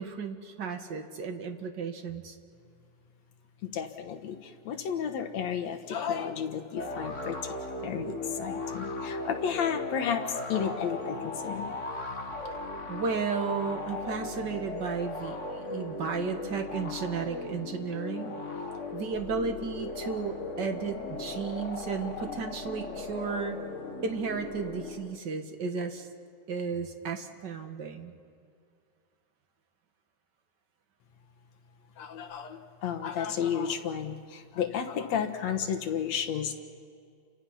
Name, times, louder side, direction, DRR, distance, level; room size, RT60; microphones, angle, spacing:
voice 1, 0.0-2.3 12.9-18.4 18.9-23.6 24.0-26.1 26.5-28.1, right 5 dB, 45° right, 5 dB, 1.7 m, -34 dB
voice 2, 3.7-4.4 4.7-7.4 7.8-10.2 10.5-11.8 32.0-36.5, left 8 dB, 65° left, 6 dB, 2.5 m, -32 dB
sound 1, 6.8-25.2, left 3 dB, 40° left, 1.0 m, -37 dB
30.0 x 25.5 x 5.8 m, 2.2 s
omnidirectional pair, 3.4 m